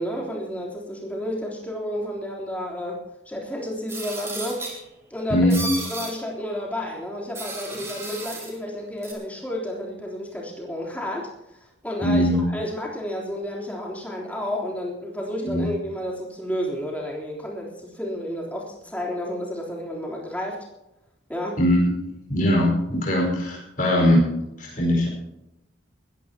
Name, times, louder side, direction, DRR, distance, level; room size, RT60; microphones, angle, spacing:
voice 1, 0.0-4.6 5.1-5.6 5.9-20.6 21.3-21.6, left 1 dB, 10° left, -2 dB, 3.4 m, -31 dB
sound 1, 3.9-4.8 5.5-6.1 7.3-8.5 9.0-9.1, right 3 dB, 15° right, 3.4 m, -33 dB
voice 2, 5.3-5.6 12.0-12.5 15.4-15.6 21.6-21.9 22.3-24.3 24.6-25.1, left 1 dB, 40° left, -2 dB, 5.0 m, -20 dB
20.5 x 14.5 x 2.9 m, 0.90 s
head